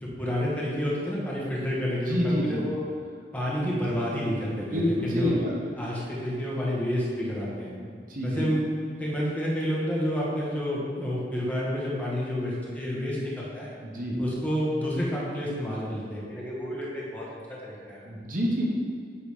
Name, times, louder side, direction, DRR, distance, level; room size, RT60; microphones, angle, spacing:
voice 1, 0.0-2.8 3.3-5.3 5.8-7.7 8.2-13.7 14.2-17.2 17.5-18.1, equal, 10° left, -5 dB, 1.3 m, -29 dB
voice 2, 2.1-2.7 4.7-5.5 7.8-8.6 13.8-14.2 18.0-18.6, equal, 50° right, -2 dB, 1.1 m, -28 dB
8.5 x 3.8 x 4.9 m, 2.2 s
head